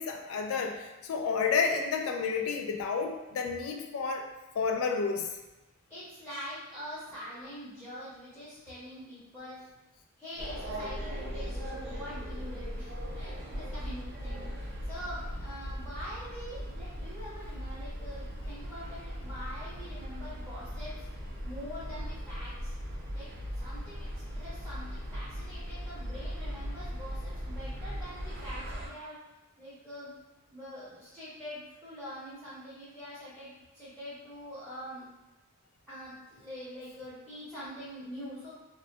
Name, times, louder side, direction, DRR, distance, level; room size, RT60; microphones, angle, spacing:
voice 1, 0.0-4.3 4.6-5.3, left 5 dB, 90° left, 4 dB, 0.3 m, -30 dB
voice 2, 5.9-9.7 10.2-21.1 21.4-22.7 23.1-23.3 23.5-29.2 29.6-30.1 30.5-35.1 35.9-38.5, equal, ahead, -14 dB, 0.8 m, -44 dB
sound 1, 10.4-28.9, equal, 55° right, 0.4 m, -39 dB
2.2 x 2.1 x 2.7 m, 1.0 s
head